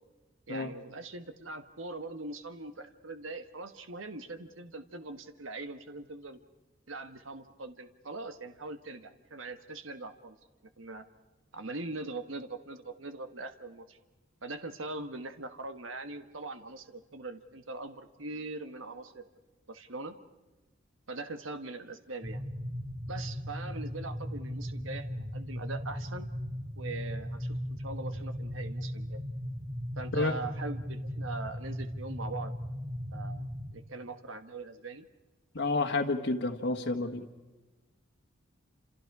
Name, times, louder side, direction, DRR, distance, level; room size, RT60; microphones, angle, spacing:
voice 1, 0.5-6.4 6.9-10.4 10.8-11.0 11.5-14.0 14.4-19.2 19.7-20.2 21.1-22.4 23.1-26.3 26.8-29.2 30.0-32.5 33.1-33.5 33.7-35.1, right 3 dB, 80° right, 8 dB, 1.4 m, -41 dB
sound 1, 22.2-33.7, equal, 20° right, 3.9 m, -37 dB
voice 2, 35.5-37.2, left 3 dB, 65° left, 1 dB, 1.6 m, -30 dB
29.5 x 28.0 x 4.8 m, 1.2 s
head